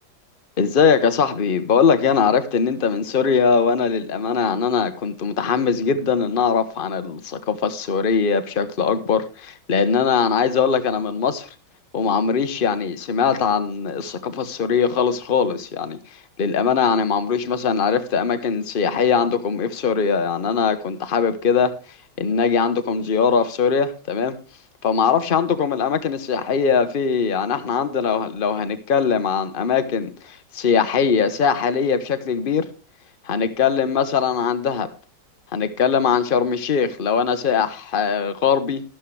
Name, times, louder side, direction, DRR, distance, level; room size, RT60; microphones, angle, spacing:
voice 1, 0.6-11.5 11.9-16.0 16.4-21.7 22.2-24.4 24.8-32.7 33.2-34.9 35.5-38.8, left 6 dB, 35° left, 1.0 m, -21 dB
13.0 x 12.0 x 3.3 m
omnidirectional pair, 2.2 m